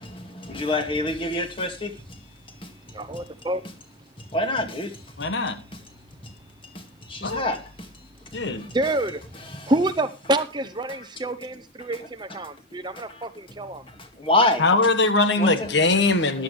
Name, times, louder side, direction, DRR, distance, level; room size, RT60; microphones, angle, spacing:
voice 1, 0.2-1.9 2.6-2.7 4.3-4.9 6.7-7.6 8.6-8.7 9.5-9.7 14.2-14.6 15.4-15.7, left 2 dB, 25° left, 2.1 m, -25 dB
voice 2, 2.6-3.6 3.9-4.0 6.4-6.5 8.6-13.9 14.7-14.8, right 1 dB, 25° right, 0.8 m, -28 dB
voice 3, 5.2-5.6 7.2-7.5 8.3-8.6 14.6-16.4, left 3 dB, 60° left, 1.4 m, -21 dB
14.5 x 11.0 x 3.3 m
head